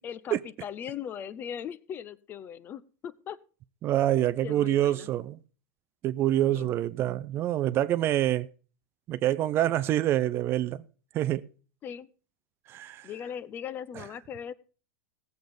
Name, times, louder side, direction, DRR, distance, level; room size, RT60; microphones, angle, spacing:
voice 1, 0.0-3.4 4.4-5.1 6.5-6.7 11.8-12.1 13.0-14.5, left 8 dB, 25° left, 0.6 m, -39 dB
voice 2, 3.8-5.4 6.0-8.5 9.1-10.8 11.1-11.4 12.7-13.1 14.0-14.1, right 13 dB, 30° right, 0.5 m, -26 dB
16.0 x 7.9 x 5.1 m
supercardioid pair, 145°, 8 cm